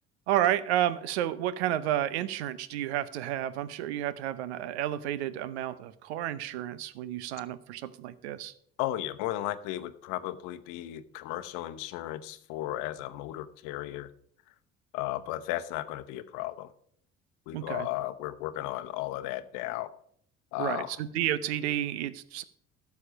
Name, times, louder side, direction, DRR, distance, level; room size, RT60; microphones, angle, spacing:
voice 1, 0.3-8.5 17.5-17.9 20.6-22.4, right 12 dB, 85° right, 16 dB, 0.7 m, -31 dB
voice 2, 8.8-14.1 14.9-16.7 17.5-19.9 20.5-20.9, left 14 dB, 70° left, 12 dB, 0.9 m, -35 dB
12.5 x 7.0 x 5.1 m, 0.64 s
hypercardioid pair, 60°, 32 cm